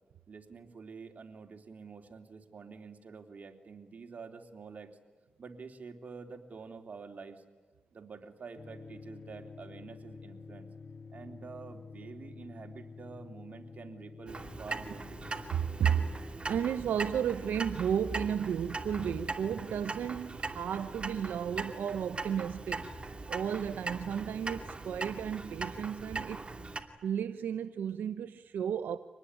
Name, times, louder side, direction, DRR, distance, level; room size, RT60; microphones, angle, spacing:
voice 1, 0.3-4.9 5.4-7.4 7.9-10.7 11.1-15.2, right 5 dB, 55° right, 3.2 m, -48 dB
sound 1, 8.6-16.3, left 4 dB, 50° left, 1.6 m, -49 dB
Clock, 14.3-26.8, right 3 dB, 35° right, 2.7 m, -40 dB
voice 2, 15.5-16.1 16.5-22.9 23.3-26.4 27.0-29.0, right 8 dB, 90° right, 0.8 m, -33 dB
25.5 x 19.5 x 9.9 m
cardioid pair, 65°, 3 cm